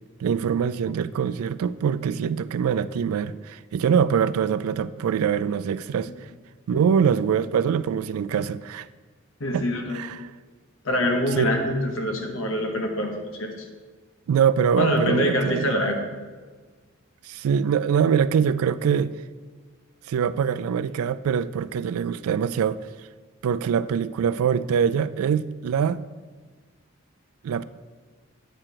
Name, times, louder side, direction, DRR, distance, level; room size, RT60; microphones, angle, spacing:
voice 1, 0.2-6.1 6.7-8.9 9.5-9.6 9.9-10.2 11.4-11.5 14.3-15.7 17.2-19.1 20.1-22.8 23.4-26.0 27.4-27.6, right 7 dB, 85° right, 0.3 m, -23 dB
voice 2, 9.4-10.0 10.8-13.5 14.8-16.0, left 1 dB, 70° left, 1.1 m, -25 dB
8.8 x 4.5 x 4.9 m
head